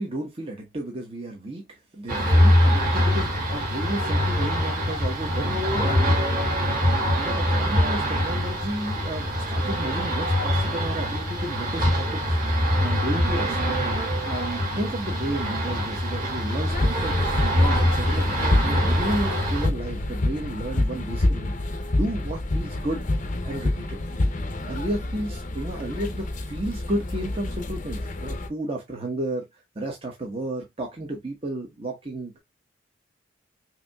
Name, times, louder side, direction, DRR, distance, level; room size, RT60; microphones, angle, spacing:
voice 1, 0.0-6.2 6.8-12.2 12.5-13.9 14.2-17.2 17.4-21.5 21.9-23.0 23.4-24.0 24.7-32.4, right 1 dB, 30° right, 1.0 m, -33 dB
sound 1, 2.1-19.7, equal, 50° right, 1.6 m, -23 dB
sound 2, 16.7-28.5, left 1 dB, 40° left, 0.6 m, -28 dB
5.8 x 2.7 x 2.2 m
head